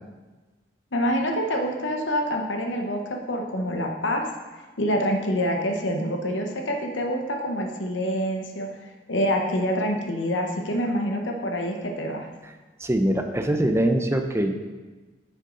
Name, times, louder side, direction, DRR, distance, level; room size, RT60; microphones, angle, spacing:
voice 1, 0.9-4.3 4.8-8.7 9.1-12.3, equal, 80° left, 2 dB, 1.0 m, -26 dB
voice 2, 12.8-14.5, right 1 dB, 15° right, 5 dB, 0.6 m, -23 dB
9.6 x 6.5 x 3.9 m, 1.3 s
head